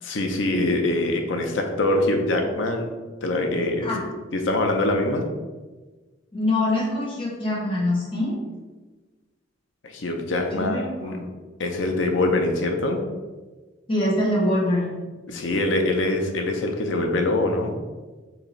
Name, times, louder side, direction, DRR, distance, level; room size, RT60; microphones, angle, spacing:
voice 1, 0.0-3.0 3.2-3.9 4.3-5.3 9.8-11.2 11.6-13.0 15.3-17.7, left 2 dB, 85° left, 3 dB, 0.6 m, -24 dB
voice 2, 6.3-8.3 10.5-11.2 13.9-14.9, left 1 dB, 30° left, -5 dB, 1.0 m, -24 dB
4.8 x 2.7 x 3.2 m, 1.3 s
head